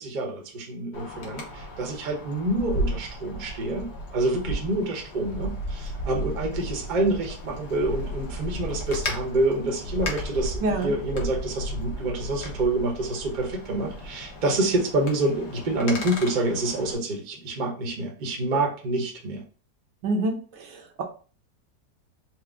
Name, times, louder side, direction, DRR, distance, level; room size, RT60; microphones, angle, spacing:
voice 1, 0.0-19.4, right 2 dB, 40° right, 1 dB, 0.7 m, -27 dB
Wind, 0.9-17.0, equal, 65° left, 1.5 m, -34 dB
voice 2, 10.6-10.9 20.0-21.0, right 2 dB, 75° right, 2 dB, 1.4 m, -27 dB
4.6 x 2.0 x 3.5 m, 0.38 s
omnidirectional pair, 1.9 m